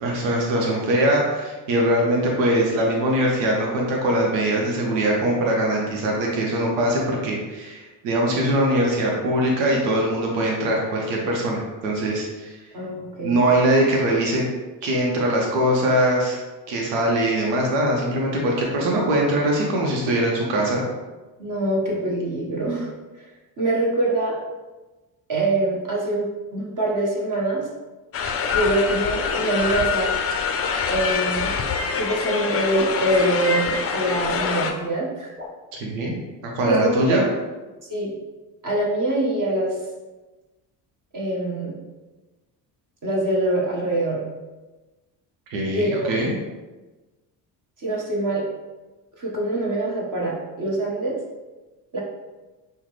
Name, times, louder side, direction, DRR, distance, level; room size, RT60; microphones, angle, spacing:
voice 1, 0.0-12.5 13.2-14.4 14.8-16.4 16.7-20.8 35.8-36.1 36.4-37.2 45.5-46.3, right 1 dB, 80° right, -1 dB, 0.9 m, -22 dB
voice 2, 12.7-13.4 21.4-22.9 23.2-23.3 23.6-24.4 25.3-26.2 26.5-27.7 28.5-30.1 30.9-31.6 31.9-35.3 36.7-37.2 37.9-38.1 38.6-39.7 41.1-41.8 43.0-44.2 45.6-46.1 47.8-48.5 49.2-51.2 51.9-52.0, right 1 dB, 40° right, -4 dB, 1.4 m, -24 dB
sound 1, 28.1-34.7, left 5 dB, 30° left, 0.5 m, -25 dB
sound 2, 28.4-28.5 29.2-29.3 30.0-30.1 30.8-30.9 31.7-31.8 32.5-32.6 33.4-33.5 34.4-34.5 35.4-35.5, left 3 dB, 20° right, 1.3 m, -36 dB
5.5 x 2.2 x 3.2 m, 1.2 s
hypercardioid pair, 65°, 46 cm